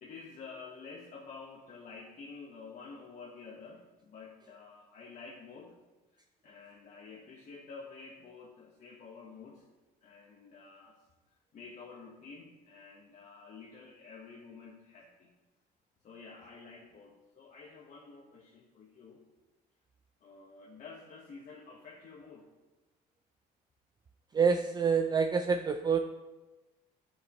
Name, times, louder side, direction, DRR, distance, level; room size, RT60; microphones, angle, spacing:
voice 1, 0.0-5.8 6.4-9.7 10.0-11.0 11.5-15.3 16.0-19.2 20.2-22.5, left 4 dB, 50° left, -2 dB, 1.3 m, -50 dB
voice 2, 24.3-26.0, right 5 dB, 25° right, 7 dB, 0.4 m, -27 dB
13.0 x 6.3 x 3.1 m, 1.1 s
cardioid pair, 110°, 17 cm